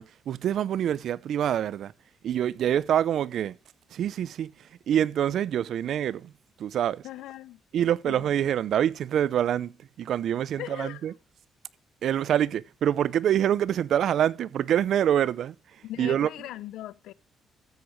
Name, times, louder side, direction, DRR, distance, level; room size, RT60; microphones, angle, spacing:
voice 1, 0.0-1.9 2.2-3.6 3.9-4.5 4.9-6.3 6.6-7.0 7.7-11.1 12.0-15.5 16.0-16.3, right 10 dB, 70° right, 0.5 m, -26 dB
voice 2, 7.0-7.6 8.1-8.3 10.6-11.1 15.8-17.1, left 14 dB, 85° left, 0.5 m, -39 dB
13.0 x 8.7 x 3.1 m
cardioid pair, 90°, 0 cm